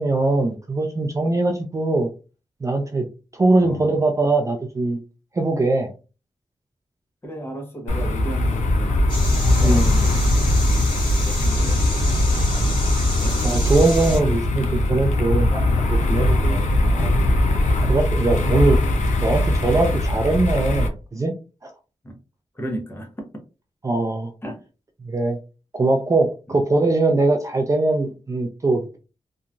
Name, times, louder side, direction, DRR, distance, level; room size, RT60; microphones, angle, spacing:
voice 1, 0.0-2.1 2.6-3.1 3.3-5.0 5.3-5.9 9.6-10.0 13.4-16.6 16.9-17.2 17.8-18.8 19.2-21.3 21.6-21.7 23.8-24.3 25.0-25.4 25.7-29.0, right 2 dB, 25° right, 0.4 m, -21 dB
voice 2, 3.6-3.9 7.2-9.0 9.4-10.5 10.9-12.2 12.5-13.4 16.4-16.7 17.8-18.1 22.0-22.2 22.5-23.1 24.4-24.6 26.5-26.6, right 1 dB, 20° left, 0.8 m, -35 dB
sound 1, 7.9-20.9, left 1 dB, 90° left, 0.5 m, -20 dB
sound 2, 9.1-14.2, left 1 dB, 35° left, 1.5 m, -30 dB
2.8 x 2.2 x 2.5 m
wide cardioid pair, 135°, 12 cm